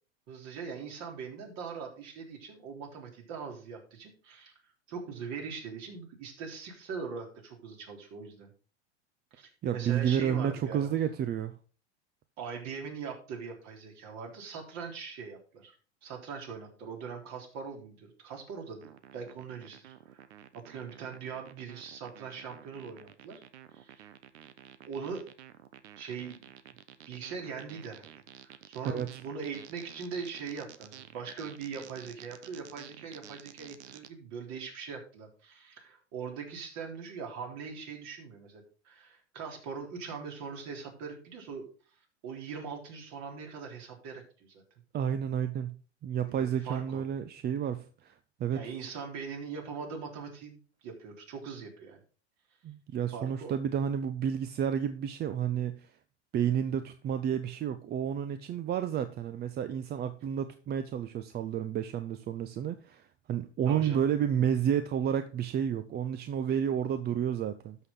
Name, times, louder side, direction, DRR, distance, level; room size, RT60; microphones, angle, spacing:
voice 1, 0.3-4.5 4.9-8.5 9.3-10.9 12.4-15.8 16.0-20.3 20.5-23.4 23.7-24.1 24.9-25.3 26.0-26.5 27.1-28.2 28.4-41.6 42.2-44.6 46.2-47.0 48.5-52.0 53.1-53.5 63.7-64.0, right 5 dB, 50° right, 2 dB, 3.6 m, -41 dB
voice 2, 9.6-11.5 28.8-29.2 44.9-45.8 46.0-48.1 48.4-48.6 52.6-55.9 56.3-67.8, right 9 dB, 30° right, 11 dB, 0.7 m, -31 dB
sound 1, 18.8-34.1, right 11 dB, 70° right, 1.0 m, -52 dB
12.5 x 6.3 x 3.8 m, 0.38 s
hypercardioid pair, 95°, 35 cm